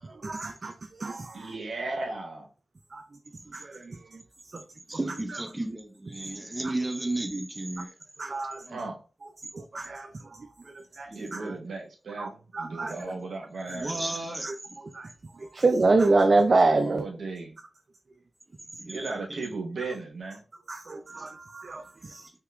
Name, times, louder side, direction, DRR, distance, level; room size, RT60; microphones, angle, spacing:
voice 1, 0.0-1.5 2.9-3.0 3.5-4.2 4.5-4.6 5.3-5.4 6.2-6.3 6.6-6.7 8.2-8.6 9.5-10.5 11.0-11.5 12.2-12.9 14.4-17.0 20.7-22.3, right 3 dB, 55° right, 0.3 m, -27 dB
voice 2, 1.3-2.5 8.7-9.0 11.1-14.1 16.7-17.5 18.9-20.4, right 3 dB, 85° right, 0.7 m, -36 dB
voice 3, 4.9-7.9 8.7-8.8 11.1-11.5 12.9-13.1 13.7-14.5 18.8-19.2 21.2-21.3, right 2 dB, 25° right, 0.6 m, -33 dB
3.6 x 2.8 x 2.2 m
cardioid pair, 45°, 0 cm